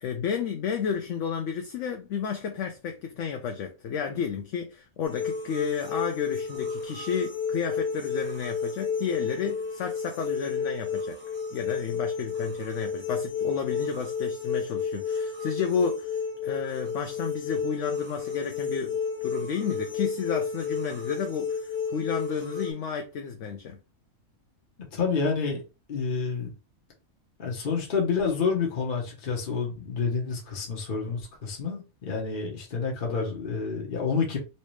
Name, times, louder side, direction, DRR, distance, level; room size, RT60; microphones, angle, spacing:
voice 1, 0.0-11.2 11.5-23.8, left 6 dB, 70° left, 0.8 m, -32 dB
sound 1, 5.0-22.7, left 5 dB, 15° left, 0.4 m, -32 dB
voice 2, 24.9-25.6 25.9-26.5 27.4-34.4, left 5 dB, 40° left, 1.0 m, -28 dB
3.2 x 2.8 x 3.1 m
omnidirectional pair, 1.4 m